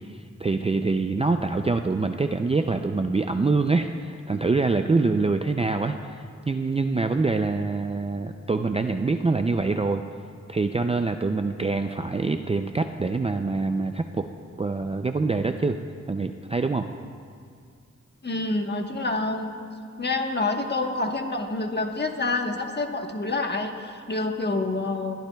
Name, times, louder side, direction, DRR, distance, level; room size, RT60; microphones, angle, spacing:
voice 1, 0.4-10.0 10.5-14.3 14.6-15.8 16.1-16.9, right 3 dB, 20° right, 6 dB, 0.3 m, -25 dB
voice 2, 18.2-19.5 20.0-25.2, left 2 dB, 35° left, 3 dB, 1.2 m, -27 dB
21.5 x 12.0 x 2.3 m, 2.3 s
wide cardioid pair, 75°, 30 cm